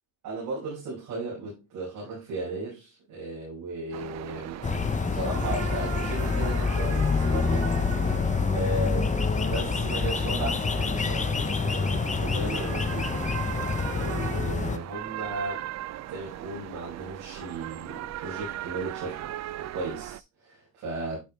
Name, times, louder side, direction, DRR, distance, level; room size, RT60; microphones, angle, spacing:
voice 1, 0.2-4.6 5.1-9.2 9.5-13.1 13.9-15.6 16.1-19.3 19.6-21.2, right 2 dB, 85° right, 5.1 m, -36 dB
sound 1, 3.9-20.2, right 13 dB, 60° right, 0.5 m, -38 dB
sound 2, 4.6-14.8, left 5 dB, 25° left, 0.8 m, -27 dB
10.5 x 5.1 x 3.1 m
cardioid pair, 90°, 30 cm